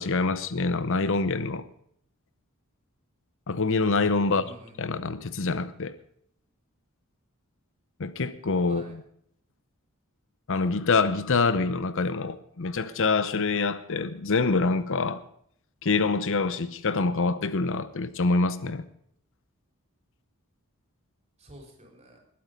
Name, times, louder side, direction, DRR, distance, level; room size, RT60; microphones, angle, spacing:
voice 1, 0.0-1.7 3.5-4.4 4.8-5.9 8.0-8.8 10.5-15.2 15.8-18.8, left 3 dB, 60° left, 14 dB, 0.8 m, -25 dB
voice 2, 4.3-5.6 8.7-8.9 21.4-22.2, right 1 dB, 30° right, 1 dB, 4.3 m, -50 dB
20.5 x 8.7 x 5.2 m, 0.68 s
head